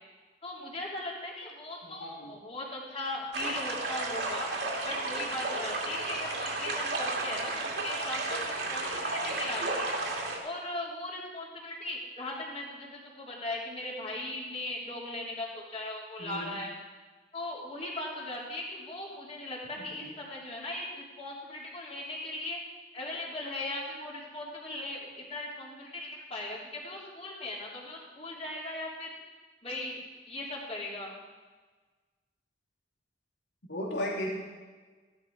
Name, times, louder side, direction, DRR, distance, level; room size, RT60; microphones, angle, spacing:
voice 1, 0.4-10.0 10.4-16.7 17.3-22.6 22.9-29.1 29.6-30.0 30.3-31.2, left 2 dB, 35° left, -3 dB, 3.2 m, -38 dB
voice 2, 1.8-2.3 16.2-16.6 19.8-20.1 33.7-34.3, left 1 dB, 80° left, -3 dB, 3.1 m, -36 dB
sound 1, 3.3-10.4, right 2 dB, 70° right, 2.4 m, -33 dB
14.5 x 11.5 x 4.7 m, 1.4 s
head